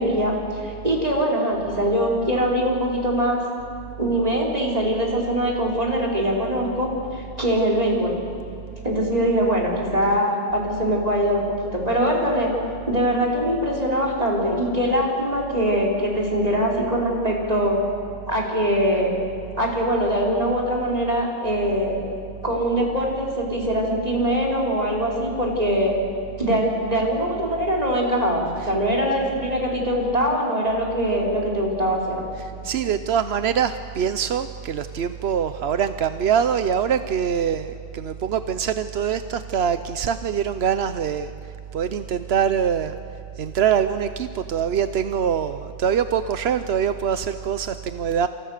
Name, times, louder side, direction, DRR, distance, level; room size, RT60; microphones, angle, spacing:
voice 1, 0.0-3.4 4.0-8.2 8.8-11.4 11.7-12.5 12.9-17.8 18.3-19.1 19.6-22.0 22.4-25.9 26.4-32.2, equal, 40° right, -2 dB, 5.0 m, -22 dB
voice 2, 32.4-41.3 41.7-43.0 43.4-48.3, right 8 dB, 90° right, 11 dB, 1.1 m, -24 dB
28.0 x 27.5 x 6.7 m, 2.6 s
omnidirectional pair, 1.0 m